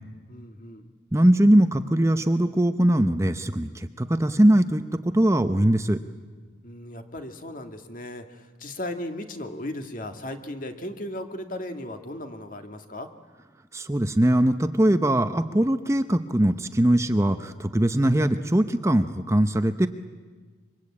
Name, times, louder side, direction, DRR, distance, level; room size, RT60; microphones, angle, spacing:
voice 1, 0.3-0.9 6.6-13.1, left 1 dB, 45° left, 6 dB, 2.0 m, -36 dB
voice 2, 1.1-6.0 13.7-19.9, right 1 dB, 15° right, 9 dB, 0.7 m, -21 dB
26.5 x 24.0 x 8.6 m, 1.4 s
head